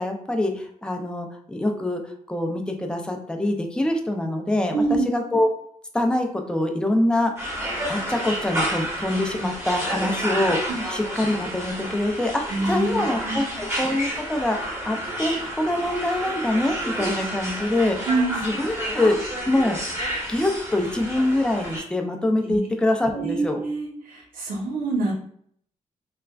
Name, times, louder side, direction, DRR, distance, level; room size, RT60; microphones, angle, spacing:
voice 1, 0.0-2.0 2.3-5.5 5.9-7.3 7.9-18.1 18.4-19.2 19.5-19.8 20.3-23.6, left 1 dB, 5° left, 3 dB, 0.5 m, -24 dB
voice 2, 4.7-5.1 10.7-10.8 12.5-13.6 18.1-18.4 22.4-22.6 23.1-25.1, right 3 dB, 90° right, -1 dB, 0.8 m, -26 dB
sound 1, 7.4-21.8, equal, 20° right, 1.2 m, -30 dB
3.3 x 2.1 x 2.4 m, 0.63 s
cardioid pair, 65°, 14 cm